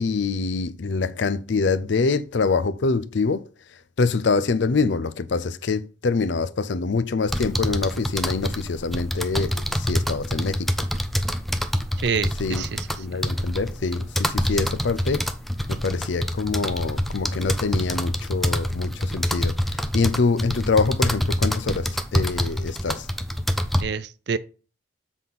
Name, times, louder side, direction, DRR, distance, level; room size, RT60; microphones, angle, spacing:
voice 1, 0.0-3.5 4.0-10.7 12.4-12.7 13.0-15.3 15.7-23.1, left 4 dB, 65° left, 0.5 m, -25 dB
sound 1, 7.3-23.8, equal, ahead, 0.4 m, -26 dB
voice 2, 12.0-12.9 13.1-13.2 23.8-24.4, right 6 dB, 55° right, 0.5 m, -27 dB
7.5 x 4.1 x 5.4 m
head